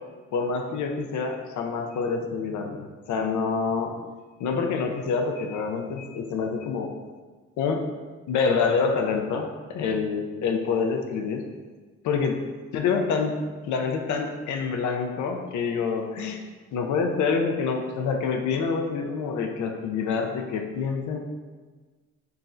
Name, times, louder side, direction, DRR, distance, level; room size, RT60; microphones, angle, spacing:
voice 1, 0.3-3.9 4.4-6.9 7.6-7.8 8.3-11.4 12.0-12.4 12.7-13.4 13.7-16.4 16.7-21.2, left 5 dB, 75° left, 3 dB, 0.5 m, -27 dB
4.7 x 3.1 x 2.5 m, 1.4 s
cardioid pair, 90°, 30 cm